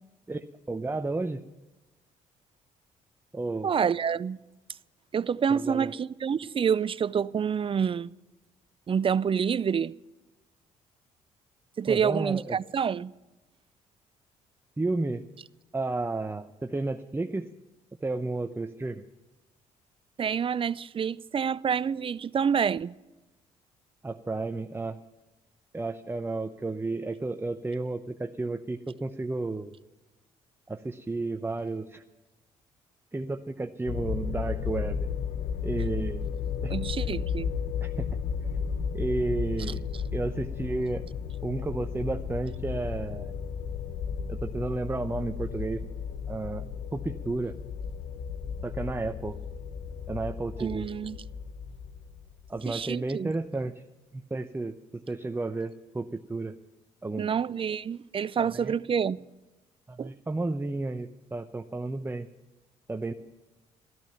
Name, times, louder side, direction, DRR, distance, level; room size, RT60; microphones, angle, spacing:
voice 1, 0.3-1.4 3.3-3.7 5.5-5.9 11.9-12.6 14.8-15.2 15.7-17.5 18.0-19.0 24.0-25.0 25.7-29.7 30.7-32.0 33.1-35.0 35.6-36.3 36.6-36.7 37.8-38.1 38.9-39.8 40.1-41.1 41.4-43.3 44.3-45.8 46.3-46.6 46.9-47.6 48.6-49.4 50.1-50.9 52.5-53.8 54.1-56.6 57.0-57.3 58.4-58.8 59.9-62.3 62.9-63.1, right 2 dB, 15° right, 0.8 m, -32 dB
voice 2, 3.6-4.4 5.1-8.1 8.9-9.9 11.8-13.1 20.2-23.0 36.7-37.5 50.6-51.2 52.7-53.3 57.2-59.2 60.0-60.1, right 7 dB, 35° right, 0.5 m, -27 dB
sound 1, 33.9-52.8, left 6 dB, 65° left, 1.2 m, -34 dB
14.0 x 14.0 x 5.8 m
supercardioid pair, 60°, 15 cm